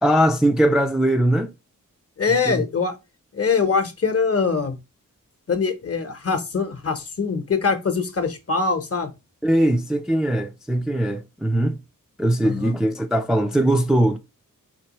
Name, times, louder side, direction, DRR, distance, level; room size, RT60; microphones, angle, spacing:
voice 1, 0.0-1.5 2.5-2.6 9.4-11.8 12.2-14.2, right 1 dB, ahead, 0.4 m, -20 dB
voice 2, 2.2-2.9 3.3-4.8 5.5-9.1 12.4-12.7, left 5 dB, 45° left, 0.9 m, -23 dB
4.5 x 3.0 x 2.9 m
wide cardioid pair, 130°, 33 cm